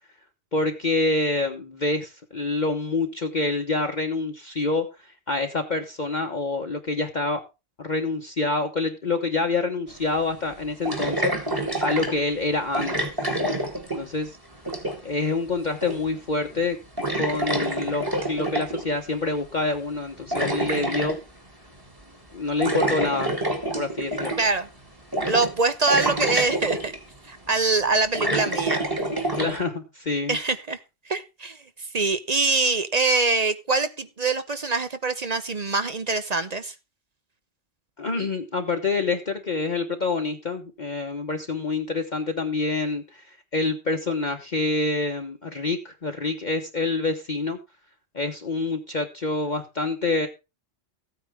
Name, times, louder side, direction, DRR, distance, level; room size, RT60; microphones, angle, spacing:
voice 1, 0.5-7.4 7.8-11.3 11.8-13.1 13.9-14.3 15.0-16.8 17.2-21.2 22.3-23.4 23.7-24.3 29.4-30.4 38.0-47.6 48.1-50.3, left 3 dB, 40° left, 1.2 m, -27 dB
sound 1, 9.9-10.0 10.8-12.2 12.7-14.3 14.5-15.1 15.8-16.2 16.5-16.6 17.0-18.9 19.9-21.2 22.6-24.6 25.1-25.6 25.9-27.0 27.7-29.6, right 1 dB, 20° right, 2.4 m, -27 dB
voice 2, 24.4-24.7 25.3-26.9 27.3-28.8 30.3-30.8 31.1-31.6 31.9-36.7, right 3 dB, 40° right, 0.8 m, -24 dB
15.0 x 9.1 x 3.5 m
omnidirectional pair, 1.2 m